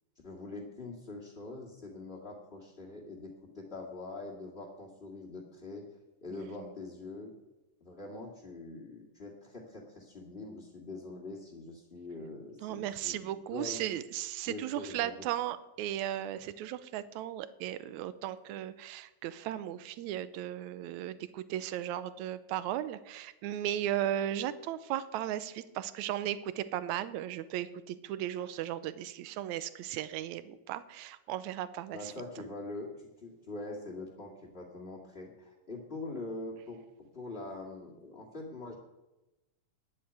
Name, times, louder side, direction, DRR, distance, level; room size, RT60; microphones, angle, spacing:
voice 1, 0.2-5.9 6.2-7.3 7.8-13.2 13.5-13.9 14.5-15.3 31.9-36.8 37.1-38.7, left 2 dB, 20° left, -6 dB, 2.2 m, -43 dB
voice 2, 12.6-32.1, right 12 dB, 85° right, 14 dB, 2.1 m, -36 dB
10.5 x 8.7 x 9.5 m, 1.0 s
omnidirectional pair, 3.3 m